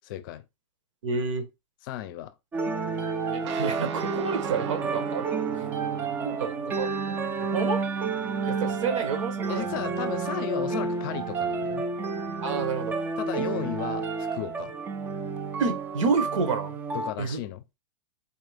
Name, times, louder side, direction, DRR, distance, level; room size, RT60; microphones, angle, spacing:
voice 1, 0.1-0.4 1.9-2.3 9.5-11.9 13.2-14.7 16.9-17.6, left 13 dB, 45° left, 0.5 m, -34 dB
voice 2, 1.0-1.5 3.3-5.6 6.2-7.8 8.5-9.7 12.4-12.9 15.6-16.8 17.2-17.4, right 4 dB, 80° right, 1.2 m, -29 dB
sound 1, 2.5-17.1, right 4 dB, 10° right, 0.3 m, -30 dB
sound 2, 3.4-12.4, right 8 dB, 65° right, 0.5 m, -41 dB
4.2 x 2.8 x 3.4 m
supercardioid pair, 150°, 16 cm